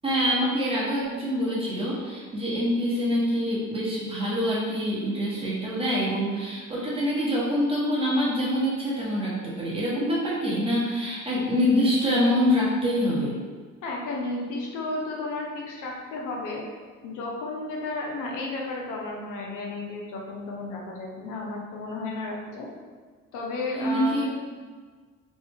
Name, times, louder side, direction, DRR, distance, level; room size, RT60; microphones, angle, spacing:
voice 1, 0.0-13.3 23.7-24.2, equal, 20° right, -7 dB, 1.2 m, -25 dB
voice 2, 13.8-16.6 17.0-22.7 23.3-24.2, left 2 dB, 90° left, -1 dB, 0.7 m, -33 dB
3.2 x 2.6 x 3.5 m, 1.5 s
cardioid pair, 90°, 30 cm